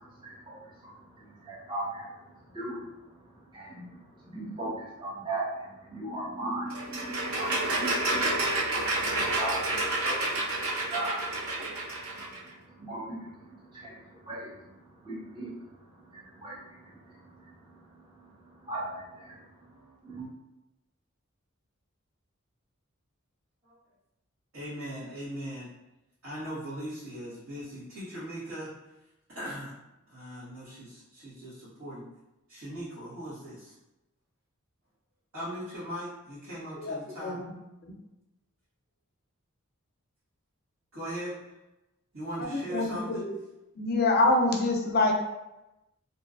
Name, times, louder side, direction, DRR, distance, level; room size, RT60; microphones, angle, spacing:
voice 1, 0.0-20.3, right 1 dB, 25° right, -6 dB, 0.7 m, -39 dB
sound 1, 6.7-12.4, right 2 dB, 90° right, 0.5 m, -29 dB
voice 2, 24.5-25.7 26.2-28.7 29.3-29.7 30.1-32.1 32.5-33.7 35.3-37.3 40.9-41.6 42.1-43.2, equal, 65° right, -12 dB, 1.1 m, -39 dB
voice 3, 42.5-42.9 43.1-43.4 43.8-45.1, left 2 dB, 50° left, 1 dB, 0.4 m, -25 dB
2.6 x 2.2 x 2.4 m, 0.95 s
head